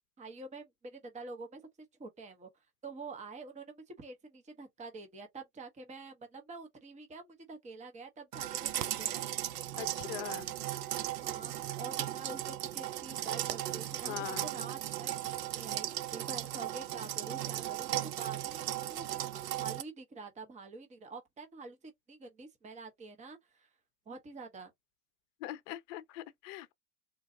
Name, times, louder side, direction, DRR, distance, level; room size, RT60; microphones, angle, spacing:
voice 1, 0.2-2.5 2.8-9.3 11.2-19.1 19.5-23.7 24.1-24.7, right 3 dB, 15° right, 1.0 m, -47 dB
sound 1, 8.3-19.8, right 13 dB, 85° right, 0.6 m, -36 dB
voice 2, 9.8-10.6 14.0-14.5 25.4-26.7, left 15 dB, 55° left, 0.7 m, -42 dB
3.9 x 2.3 x 2.7 m
hypercardioid pair, 100°, 46 cm